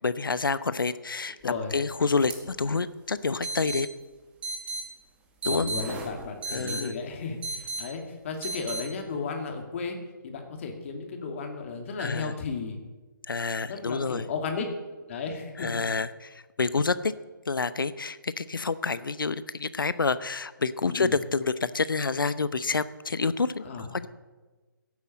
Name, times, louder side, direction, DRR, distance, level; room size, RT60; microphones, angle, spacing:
voice 1, 0.0-3.9 5.4-5.7 6.5-6.9 12.0-12.3 13.3-14.3 15.6-17.1 17.5-24.1, left 4 dB, 70° left, 14 dB, 0.9 m, -28 dB
voice 2, 1.4-1.7 5.5-10.0 10.2-12.8 13.6-14.7 15.1-15.9 20.8-21.1 23.6-23.9, left 5 dB, 35° left, 3 dB, 2.6 m, -34 dB
sound 1, 2.3-2.4 2.6-2.7 3.4-3.8 4.4-4.8 5.4-6.8 7.4-7.8 8.4-8.8, right 2 dB, 10° right, 1.8 m, -33 dB
16.0 x 8.4 x 8.6 m, 1.3 s
figure-of-eight pair, 145°, 12 cm